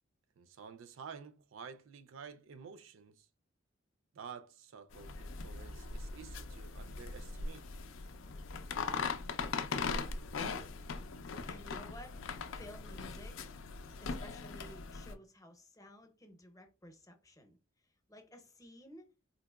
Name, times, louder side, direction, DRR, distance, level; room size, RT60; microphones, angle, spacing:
voice 1, 0.4-3.3 4.1-7.7, right 6 dB, 80° right, 0.4 m, -51 dB
sound 1, 4.9-15.1, left 4 dB, 75° left, 0.4 m, -40 dB
voice 2, 10.3-10.7 11.5-12.2 12.5-13.4 14.0-17.6 17.8-19.1, equal, 20° left, 0.7 m, -54 dB
3.9 x 2.8 x 2.2 m
head